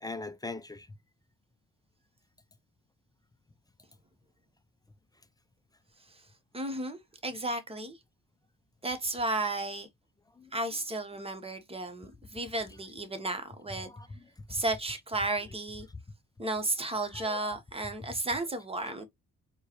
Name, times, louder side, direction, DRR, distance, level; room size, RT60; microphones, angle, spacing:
voice 1, 0.0-0.9 10.4-10.5 13.8-14.1 17.1-17.4 18.8-19.0, left 3 dB, 15° left, 0.4 m, -41 dB
voice 2, 6.5-8.0 8.8-9.9 10.5-13.9 14.5-15.9 16.4-19.1, right 2 dB, 20° right, 1.0 m, -33 dB
4.4 x 2.2 x 2.9 m
cardioid pair, 90°, 30 cm